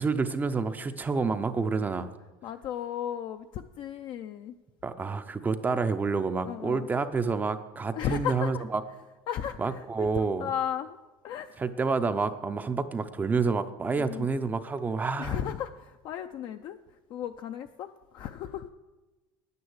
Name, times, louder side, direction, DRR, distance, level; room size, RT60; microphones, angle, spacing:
voice 1, 0.0-2.1 4.8-8.8 9.6-10.5 11.6-15.6, right 4 dB, 15° right, 10 dB, 0.6 m, -28 dB
voice 2, 2.4-4.5 6.5-6.9 7.9-8.6 9.3-11.0 11.2-11.6 13.9-14.3 15.2-18.7, left 10 dB, 40° left, 7 dB, 0.5 m, -35 dB
9.6 x 9.5 x 8.0 m, 1.2 s
cardioid pair, 155°, 11 cm